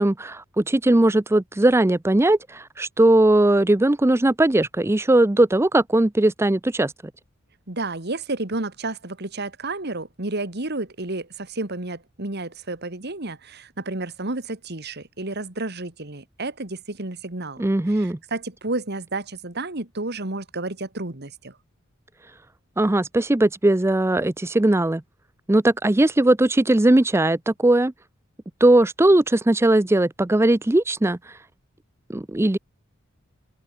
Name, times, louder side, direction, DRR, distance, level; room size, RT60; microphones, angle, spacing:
voice 1, 0.0-6.9 17.6-18.2 22.8-25.0 25.5-27.9 28.6-31.2 32.1-32.6, right 1 dB, 10° right, 0.5 m, -19 dB
voice 2, 7.7-17.6 17.9-21.6, right 2 dB, 50° right, 2.3 m, -31 dB
head